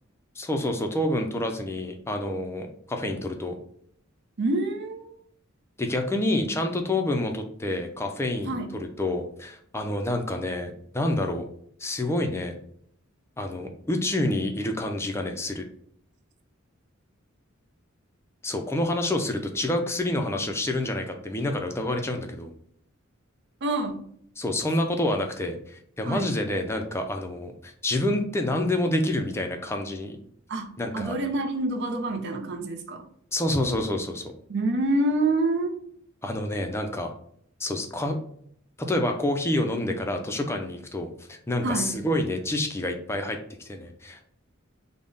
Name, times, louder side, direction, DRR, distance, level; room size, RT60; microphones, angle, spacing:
voice 1, 0.4-3.6 5.8-11.5 11.8-12.5 13.4-15.7 18.4-22.5 24.4-30.2 30.8-31.2 33.3-34.2 36.2-37.1 37.6-38.2 38.8-44.2, left 1 dB, 10° left, 4 dB, 0.4 m, -28 dB
voice 2, 4.4-5.1 8.5-8.7 23.6-24.0 26.1-26.3 30.5-33.0 34.5-35.8 41.6-42.0, right 2 dB, 55° right, 5 dB, 0.5 m, -27 dB
3.5 x 2.1 x 3.8 m, 0.65 s
head